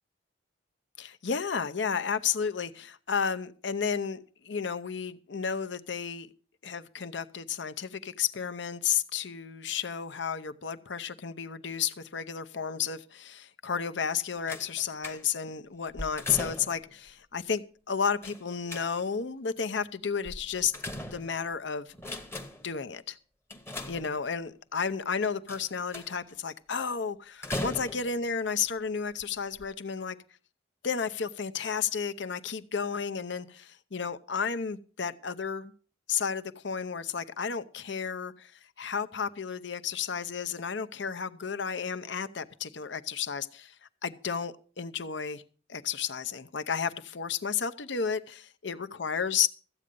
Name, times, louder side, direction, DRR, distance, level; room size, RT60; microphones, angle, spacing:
voice 1, 1.0-6.3 6.6-20.7 21.0-21.9 22.6-23.2 23.9-30.2 30.8-35.7 36.1-38.5 38.8-43.7 44.0-45.4 45.7-49.5, left 6 dB, 65° left, 0.8 m, -32 dB
sound 1, 14.5-15.5 15.9-16.9 18.2-19.2 20.3-21.5 21.9-22.7 23.5-24.5 25.5-26.3 27.4-28.3 29.1-29.2 29.6-29.7, left 1 dB, 15° left, 1.0 m, -39 dB
14.0 x 8.6 x 5.3 m
head